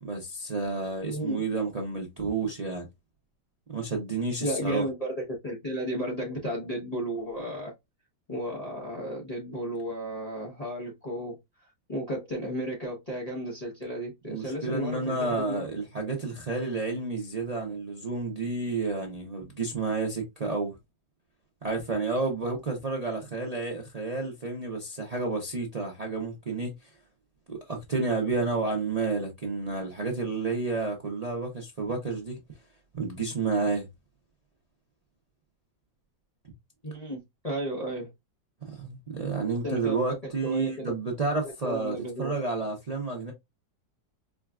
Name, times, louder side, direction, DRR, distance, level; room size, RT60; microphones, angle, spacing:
voice 1, 0.0-2.9 3.7-4.8 14.2-20.7 21.6-26.7 27.5-32.4 32.9-33.9 38.7-43.3, right 3 dB, 50° right, 0.4 m, -30 dB
voice 2, 1.0-1.4 4.4-7.7 8.3-15.7 36.8-38.1 39.6-40.0 40.4-40.9 41.4-42.3, right 1 dB, 25° left, 0.9 m, -34 dB
4.9 x 2.3 x 2.3 m
omnidirectional pair, 1.8 m